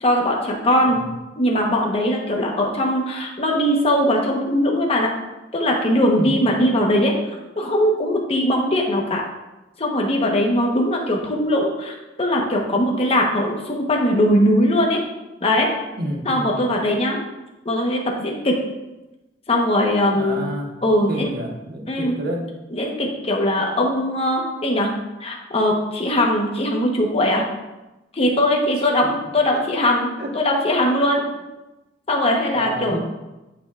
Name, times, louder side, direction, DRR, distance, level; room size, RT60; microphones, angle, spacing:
voice 1, 0.0-1.0 1.4-5.1 5.5-7.1 7.6-9.2 9.8-15.0 15.4-15.7 16.2-17.2 17.6-18.6 19.5-20.4 20.8-21.3 21.9-22.2 22.7-24.9 25.2-27.4 28.1-31.2 32.1-33.0, left 1 dB, 35° left, 0 dB, 1.1 m, -20 dB
voice 2, 6.2-6.5 16.0-16.6 20.1-20.7 21.1-22.5 29.5-29.7 30.2-30.3 31.2-31.3 32.5-33.0, right 1 dB, 60° right, 1 dB, 1.2 m, -30 dB
10.5 x 5.6 x 2.4 m, 1.0 s
head